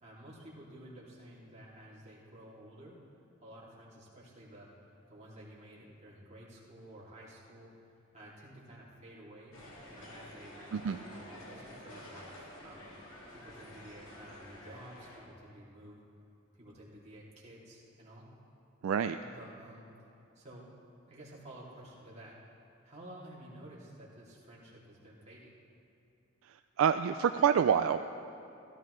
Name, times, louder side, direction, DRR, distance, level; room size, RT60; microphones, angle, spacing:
voice 1, 0.0-3.0 3.4-4.7 5.1-7.7 8.1-9.6 9.9-16.0 16.6-18.3 19.2-19.9 20.3-20.7 21.1-22.4 22.8-25.5, right 1 dB, 35° right, -6 dB, 2.7 m, -52 dB
sound 1, 9.5-15.2, left 1 dB, 80° left, 2.2 m, -50 dB
voice 2, 18.8-19.2 26.8-28.0, right 8 dB, 65° right, 9 dB, 0.3 m, -27 dB
16.5 x 13.5 x 3.2 m, 2.7 s
head